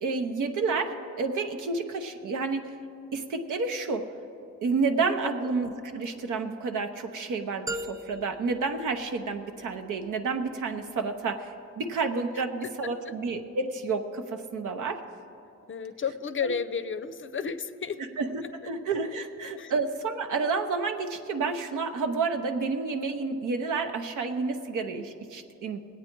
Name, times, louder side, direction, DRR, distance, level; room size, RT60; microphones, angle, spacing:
voice 1, 0.0-2.7 3.1-4.1 4.6-15.0 16.4-16.5 18.2-25.8, right 4 dB, 90° right, 6 dB, 0.9 m, -30 dB
sound 1, 7.7-9.7, right 1 dB, 10° right, 0.4 m, -39 dB
voice 2, 12.6-13.1 15.7-18.0 19.6-19.7, left 6 dB, 40° left, 12 dB, 0.5 m, -33 dB
20.0 x 8.4 x 4.5 m, 2.8 s
cardioid pair, 85°, 30 cm